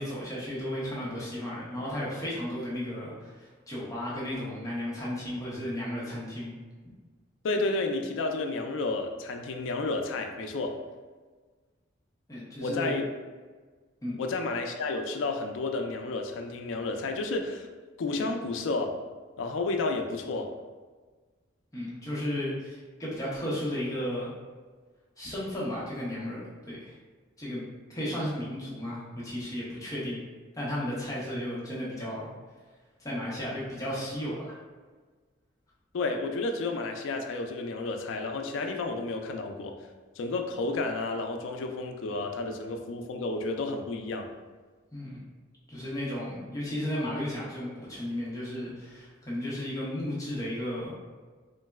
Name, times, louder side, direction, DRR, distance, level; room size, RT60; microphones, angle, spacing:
voice 1, 0.0-6.5 12.3-12.9 14.0-14.2 21.7-24.3 25.2-26.4 26.7-27.0 27.4-27.6 27.9-30.2 30.5-32.3 33.0-34.5 44.9-45.2 45.7-50.9, left 1 dB, 15° left, -7 dB, 0.6 m, -34 dB
voice 2, 7.4-10.8 12.6-13.1 14.2-17.7 18.0-18.9 19.4-20.5 35.9-39.7 40.2-44.3, left 3 dB, 80° left, 5 dB, 0.3 m, -31 dB
3.8 x 2.0 x 2.2 m, 1.4 s
head